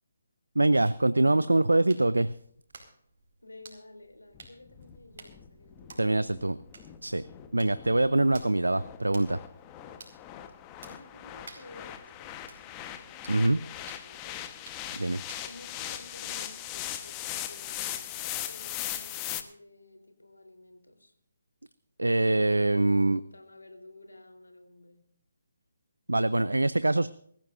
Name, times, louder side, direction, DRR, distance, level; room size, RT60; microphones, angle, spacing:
voice 1, 0.6-2.3 6.0-6.6 7.0-7.2 7.5-9.4 13.3-13.6 14.9-15.2 22.0-23.2 26.1-27.1, right 2 dB, 90° right, 15 dB, 0.6 m, -24 dB
sound 1, 0.9-18.2, right 4 dB, 55° right, 4.7 m, -55 dB
voice 2, 3.4-6.4 10.9-14.4 15.4-21.1 22.6-25.0, left 2 dB, 85° left, 4 dB, 3.7 m, -52 dB
sound 2, 4.4-19.4, left 12 dB, 20° left, 1.2 m, -40 dB
24.0 x 15.0 x 2.6 m, 0.64 s
figure-of-eight pair, 145°, 0 cm